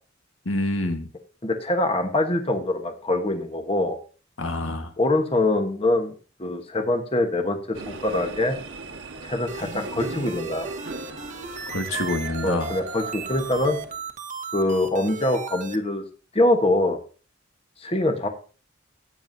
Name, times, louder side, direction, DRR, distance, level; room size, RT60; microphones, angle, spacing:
voice 1, 0.5-1.1 4.4-4.9 11.7-12.7, left 2 dB, 80° left, 6 dB, 1.6 m, -27 dB
voice 2, 1.4-4.0 5.0-6.1 6.4-8.6 9.2-10.7 12.4-13.8 14.5-16.0 16.3-17.0 17.8-18.3, left 1 dB, 30° left, 5 dB, 1.2 m, -24 dB
sound 1, 7.7-14.1, right 3 dB, 70° right, 1.5 m, -38 dB
sound 2, 9.5-15.8, right 5 dB, 40° right, 1.1 m, -36 dB
14.5 x 9.2 x 2.7 m, 0.36 s
head